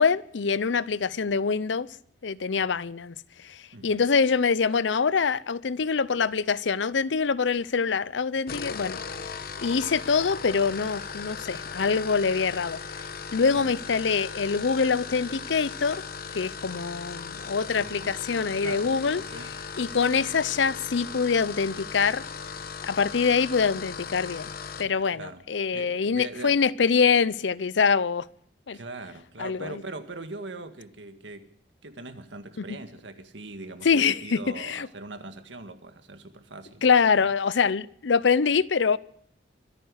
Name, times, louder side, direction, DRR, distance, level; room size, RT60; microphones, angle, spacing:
voice 1, 0.0-1.9 2.2-3.1 3.5-3.6 3.8-9.0 9.6-12.8 13.3-16.0 16.3-19.2 19.8-22.2 22.8-24.5 24.8-28.3 28.7-28.8 29.4-29.7 33.8-34.9 36.8-39.0, left 5 dB, 75° left, 0.6 m, -24 dB
sound 1, 8.4-24.9, left 5 dB, 55° left, 1.1 m, -38 dB
voice 2, 17.8-18.3 18.6-19.5 25.1-26.6 28.7-31.5 31.8-37.3, right 2 dB, 75° right, 1.8 m, -41 dB
24.0 x 9.2 x 6.4 m
head